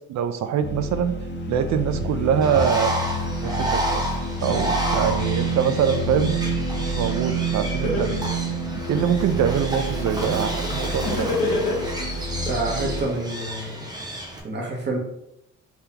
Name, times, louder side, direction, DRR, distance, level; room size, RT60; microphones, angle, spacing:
voice 1, 0.1-1.1 1.5-2.9 3.4-4.1 4.4-6.4 6.8-8.2 8.9-11.3, right 8 dB, 65° right, 10 dB, 0.5 m, -24 dB
sound 1, 0.6-13.0, right 1 dB, 35° left, 0.7 m, -28 dB
Bird, 2.4-14.4, right 1 dB, 15° right, 0.9 m, -30 dB
Laughter, 7.8-9.3 11.1-12.3, left 2 dB, 75° left, 1.3 m, -25 dB
voice 2, 12.5-13.9 14.4-15.0, right 2 dB, 35° right, -2 dB, 1.2 m, -28 dB
3.5 x 3.3 x 2.9 m, 0.81 s
cardioid pair, 90°, 30 cm